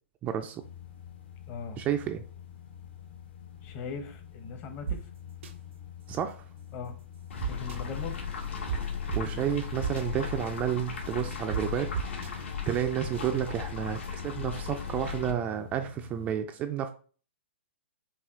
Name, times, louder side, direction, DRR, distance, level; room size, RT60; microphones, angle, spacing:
voice 1, 0.2-0.6 1.8-2.2 6.1-6.4 9.1-11.9 12.7-16.9, right 10 dB, 20° right, 6 dB, 0.4 m, -31 dB
sound 1, 0.6-16.3, left 10 dB, 55° left, 1.0 m, -47 dB
voice 2, 1.5-1.8 3.6-5.1 6.7-7.0 7.4-8.2, left 5 dB, 30° left, 7 dB, 0.9 m, -39 dB
sound 2, 4.9-5.0 5.4-5.5 7.4-7.8 8.7-8.8 9.1-9.2 9.8-10.0 11.5-11.6 11.9-12.3, right 9 dB, 75° right, 0.7 m, -31 dB
sound 3, 7.3-15.3, left 6 dB, 75° left, 1.6 m, -36 dB
5.7 x 2.4 x 3.6 m, 0.39 s
hypercardioid pair, 140°, 7 cm